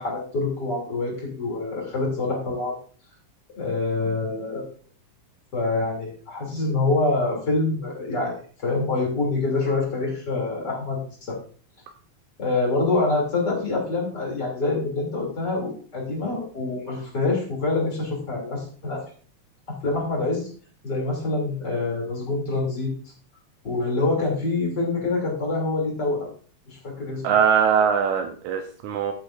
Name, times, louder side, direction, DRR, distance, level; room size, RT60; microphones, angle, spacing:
voice 1, 0.0-2.8 3.6-4.6 5.5-11.0 11.3-11.4 12.4-19.0 19.7-20.5 20.8-22.9 23.6-26.3 26.7-27.2, left 3 dB, 35° left, 3.4 m, -26 dB
voice 2, 27.2-29.1, right 7 dB, 85° right, 2.2 m, -21 dB
14.0 x 8.4 x 2.6 m
omnidirectional pair, 3.4 m